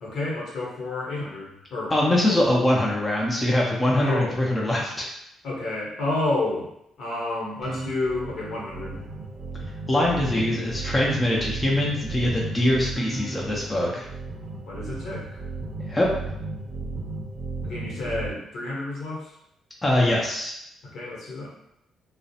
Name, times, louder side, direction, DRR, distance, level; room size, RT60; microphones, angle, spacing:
voice 1, 0.0-1.9 2.2-2.6 4.0-4.3 5.4-6.7 7.0-9.0 14.7-15.5 17.6-19.4 20.8-21.5, left 2 dB, 70° left, -4 dB, 0.9 m, -30 dB
voice 2, 1.9-5.1 9.9-14.1 15.9-16.1 19.8-20.5, left 1 dB, 15° left, -4 dB, 0.5 m, -23 dB
sound 1, 7.6-18.3, right 3 dB, 35° right, 0.6 m, -35 dB
2.4 x 2.0 x 2.7 m, 0.77 s
cardioid pair, 90°, 0 cm